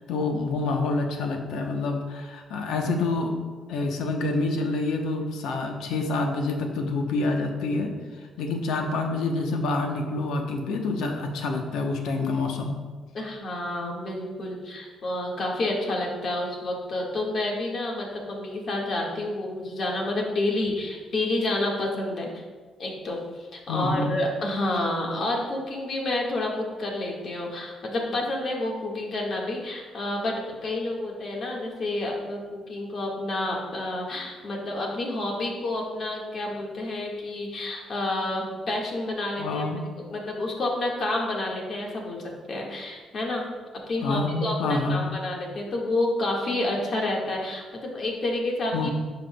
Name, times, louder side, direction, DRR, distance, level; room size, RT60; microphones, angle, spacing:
voice 1, 0.1-3.4 3.7-12.7 23.7-24.2 39.4-39.8 44.0-45.2 48.7-48.9, left 3 dB, 85° left, 3 dB, 0.9 m, -27 dB
voice 2, 13.1-22.4 22.8-43.4 43.9-48.9, left 2 dB, 55° left, -1 dB, 1.7 m, -29 dB
10.0 x 5.7 x 2.3 m, 1.4 s
cardioid pair, 90°, 0 cm